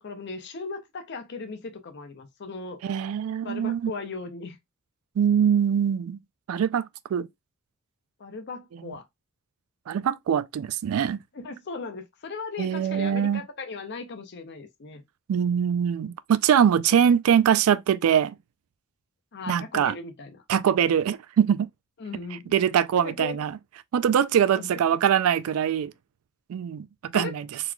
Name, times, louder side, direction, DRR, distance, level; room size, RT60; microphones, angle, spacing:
voice 1, 0.0-2.8 3.4-4.6 8.2-9.0 11.3-15.0 19.3-20.4 22.0-22.5 23.0-23.4 24.5-24.7 27.1-27.4, left 4 dB, 50° left, 0.6 m, -37 dB
voice 2, 2.8-3.9 5.2-6.2 6.5-7.3 9.9-11.2 12.6-13.4 15.3-18.4 19.5-20.0 20.5-21.7 22.5-23.6 23.9-25.9 26.5-27.5, right 8 dB, 75° right, 0.3 m, -23 dB
3.9 x 3.0 x 2.2 m
head